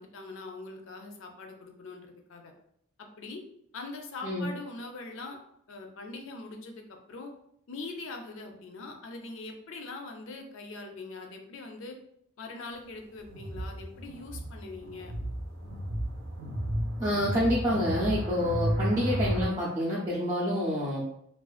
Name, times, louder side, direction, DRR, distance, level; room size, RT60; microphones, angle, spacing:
voice 1, 0.0-2.5 3.0-3.4 3.7-5.4 5.7-7.3 7.7-12.0 12.4-15.1, left 3 dB, 65° left, 4 dB, 0.4 m, -42 dB
sound 1, 13.3-19.5, equal, 90° right, 0.7 m, -33 dB
voice 2, 17.0-21.0, equal, 15° right, -8 dB, 0.4 m, -28 dB
2.4 x 2.3 x 2.4 m, 0.72 s
head